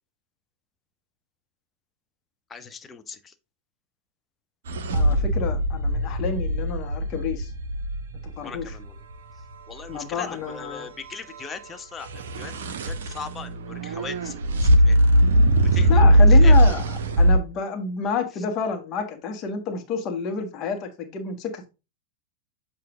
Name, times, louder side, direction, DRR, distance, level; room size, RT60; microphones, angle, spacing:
voice 1, 2.5-3.3 8.4-9.0 9.7-14.3 14.6-15.0 15.7-16.0 16.3-16.5, left 5 dB, 20° left, 0.7 m, -39 dB
sound 1, 4.7-8.8 12.1-17.4, equal, 60° right, 0.7 m, -19 dB
voice 2, 4.9-7.5 8.2-8.8 9.9-10.9 15.9-21.7, left 6 dB, 35° left, 1.2 m, -29 dB
7.6 x 2.6 x 4.8 m
figure-of-eight pair, 90°, 0 cm